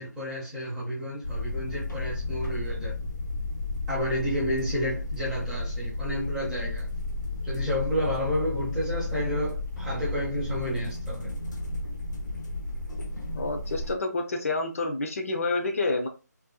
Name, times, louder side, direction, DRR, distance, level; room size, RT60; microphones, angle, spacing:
voice 1, 0.0-2.9 3.9-6.9 7.4-11.3, equal, 5° right, 0.5 m, -31 dB
sound 1, 1.2-13.9, left 2 dB, 85° left, 0.8 m, -33 dB
voice 2, 13.3-16.1, left 3 dB, 50° left, 0.5 m, -28 dB
2.5 x 2.3 x 2.3 m
figure-of-eight pair, 160°, 10 cm